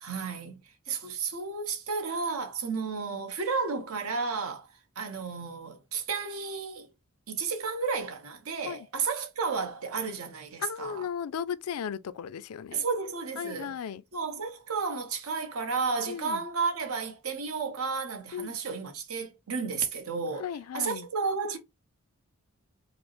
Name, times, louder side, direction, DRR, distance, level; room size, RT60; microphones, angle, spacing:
voice 1, 0.0-4.7 5.0-6.9 7.3-11.0 12.7-13.7 14.1-20.5 20.7-21.6, right 5 dB, 80° right, 0.9 m, -32 dB
voice 2, 10.6-12.8 13.4-14.0 16.1-16.4 18.3-18.6 20.4-21.1, left 8 dB, 85° left, 0.4 m, -36 dB
5.0 x 2.0 x 3.0 m
head